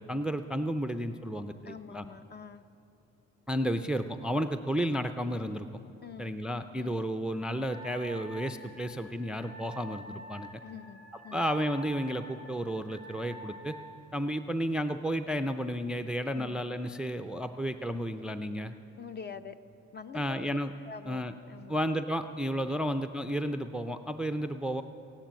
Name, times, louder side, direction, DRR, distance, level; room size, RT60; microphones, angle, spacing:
voice 1, 0.0-2.0 3.5-5.7 6.2-10.6 11.3-13.8 14.1-18.7 20.1-20.7 21.1-21.3 21.7-24.8, equal, 5° right, 10 dB, 0.4 m, -32 dB
voice 2, 1.6-2.6 6.0-6.3 6.7-7.0 10.6-11.4 16.3-16.5 19.0-19.6 19.9-20.6 20.8-21.8, left 6 dB, 35° left, 11 dB, 0.7 m, -45 dB
Wind instrument woodwind instrument, 7.7-14.0, equal, 85° left, 3.9 m, -47 dB
15.0 x 10.0 x 9.1 m, 2.9 s
cardioid pair, 90°, 30 cm